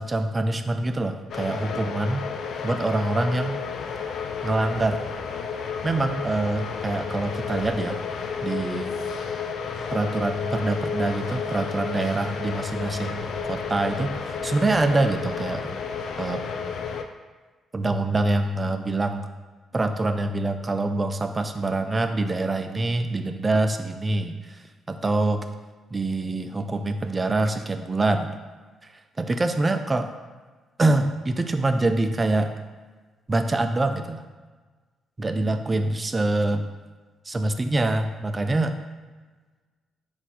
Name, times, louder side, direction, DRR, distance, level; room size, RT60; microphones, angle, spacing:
voice 1, 0.0-2.3 2.6-3.6 4.4-5.1 5.8-8.0 8.4-8.9 9.9-15.8 16.2-16.4 17.7-19.3 19.7-24.6 24.9-25.5 25.9-28.3 29.2-30.1 30.8-32.5 33.3-34.2 35.2-36.6 37.3-38.8, right 2 dB, 25° right, 8 dB, 0.3 m, -25 dB
sound 1, 1.3-17.0, left 6 dB, 65° left, 0.3 m, -32 dB
4.0 x 2.5 x 4.1 m, 1.4 s
cardioid pair, 90°, 0 cm